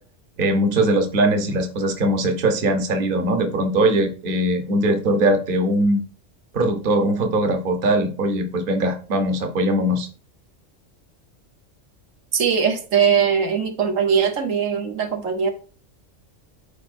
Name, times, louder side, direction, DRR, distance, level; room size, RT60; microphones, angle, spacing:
voice 1, 0.4-6.0 6.5-10.1, right 1 dB, 45° right, 5 dB, 1.2 m, -21 dB
voice 2, 12.3-15.5, right 7 dB, 85° right, 4 dB, 1.4 m, -20 dB
12.0 x 4.3 x 2.6 m, 0.38 s
omnidirectional pair, 1.3 m